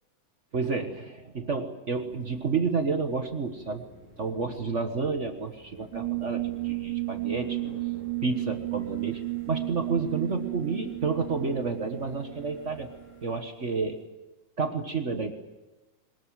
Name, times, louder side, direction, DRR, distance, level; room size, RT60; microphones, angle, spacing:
voice 1, 0.5-3.8 4.2-7.6 8.2-12.9 13.2-14.0 14.6-15.3, right 4 dB, 60° right, 6 dB, 0.7 m, -30 dB
sound 1, 1.9-13.4, left 1 dB, 20° left, 8.1 m, -53 dB
sound 2, 5.9-13.4, right 20 dB, 85° right, 3.7 m, -34 dB
23.0 x 20.5 x 9.2 m, 1.1 s
omnidirectional pair, 3.6 m